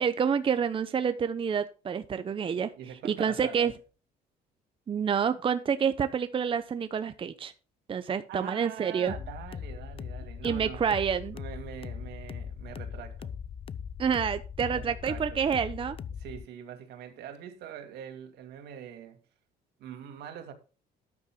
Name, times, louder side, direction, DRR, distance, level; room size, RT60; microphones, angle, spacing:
voice 1, 0.0-2.7 3.0-3.7 4.9-7.5 7.9-9.1 10.4-11.4 14.0-16.0, right 7 dB, 30° right, 0.7 m, -28 dB
voice 2, 2.8-3.7 8.3-10.8 11.3-13.3 14.7-15.4 16.1-19.2 19.8-20.5, right 9 dB, 75° right, 2.4 m, -43 dB
sound 1, 9.1-16.5, left 7 dB, 35° left, 0.5 m, -40 dB
12.5 x 9.7 x 2.2 m
cardioid pair, 110°, 17 cm